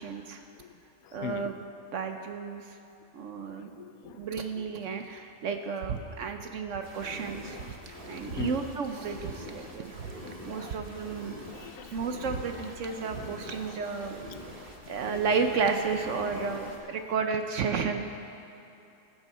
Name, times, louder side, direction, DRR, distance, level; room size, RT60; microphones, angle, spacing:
voice 1, 0.0-0.4 1.1-1.5 1.9-2.8 3.1-3.7 4.2-7.6 8.1-9.9 10.4-11.4 11.9-14.2 14.9-18.0, right 5 dB, 60° right, 6 dB, 0.9 m, -32 dB
voice 2, 0.6-1.5 3.4-4.3 4.5-4.9 6.7-6.8 7.2-8.6 9.6-9.8 10.2-12.1 12.6-13.1 13.4-14.1 14.4-14.5 14.8-15.2 16.6-17.1, left 9 dB, 70° left, 9 dB, 1.0 m, -45 dB
sound 1, 5.8-6.0 6.3-6.9 7.2-7.3 7.6-8.5 9.2-9.4 9.6-9.7 9.9-11.6 11.9-13.4, right 7 dB, 80° right, 1.3 m, -40 dB
sound 2, 6.8-16.8, equal, 35° right, 1.8 m, -45 dB
20.5 x 7.3 x 4.2 m, 2.8 s
omnidirectional pair, 1.6 m